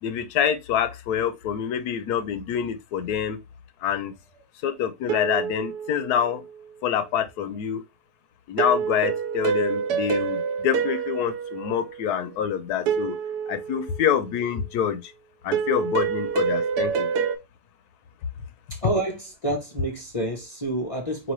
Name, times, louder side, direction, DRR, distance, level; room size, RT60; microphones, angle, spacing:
voice 1, 0.0-3.4 3.8-4.1 4.6-6.4 6.8-7.8 8.5-13.2 13.5-15.1 15.4-17.1, left 8 dB, 70° left, 1.1 m, -26 dB
sound 1, 5.1-6.6 8.6-12.2 12.9-14.4 15.5-17.4, right 6 dB, 75° right, 1.2 m, -27 dB
voice 2, 18.7-21.3, right 2 dB, 35° left, 0.5 m, -28 dB
4.6 x 3.0 x 3.0 m
omnidirectional pair, 1.8 m